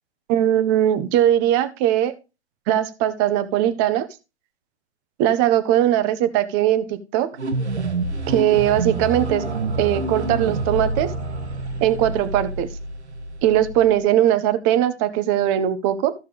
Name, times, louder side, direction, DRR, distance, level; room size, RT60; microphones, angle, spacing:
voice 1, 0.3-2.1 2.7-4.1 5.2-7.3 8.3-9.4 9.8-11.1 11.8-12.7 13.4-16.1, right 11 dB, 15° right, 13 dB, 0.6 m, -20 dB
sound 1, 7.3-14.0, right 2 dB, 80° right, 1.4 m, -27 dB
13.5 x 6.5 x 3.3 m, 0.29 s
figure-of-eight pair, 125°, 33 cm